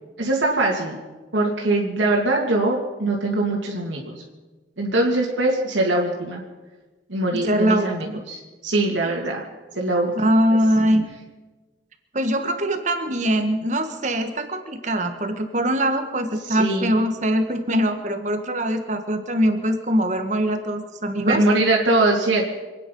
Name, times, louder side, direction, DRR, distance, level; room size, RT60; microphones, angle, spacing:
voice 1, 0.2-1.0 1.3-4.1 4.8-6.4 7.1-9.4 9.8-10.1 16.5-17.0 21.2-22.5, right 2 dB, 85° right, -2 dB, 2.3 m, -22 dB
voice 2, 7.5-8.2 10.2-11.0 12.1-21.4, equal, 40° right, 6 dB, 1.6 m, -22 dB
26.5 x 9.6 x 5.5 m, 1.2 s
head